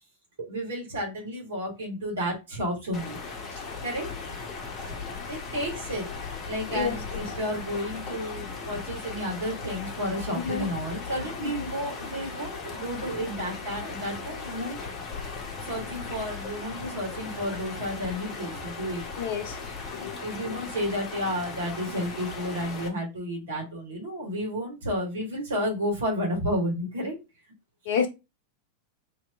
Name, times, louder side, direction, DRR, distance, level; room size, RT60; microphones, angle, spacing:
voice 1, 0.4-3.2 3.5-4.1 4.8-6.0 6.4-14.8 15.6-19.0 20.1-27.2, equal, 65° right, 1.5 m, -32 dB
sound 1, 2.9-22.9, left 4 dB, 30° left, 0.9 m, -37 dB
voice 2, 10.4-10.7 11.4-11.7 19.2-19.6 19.9-20.2 20.5-20.6 27.9-28.1, left 7 dB, 55° left, 0.7 m, -29 dB
2.9 x 2.8 x 3.4 m
figure-of-eight pair, 90°, 0 cm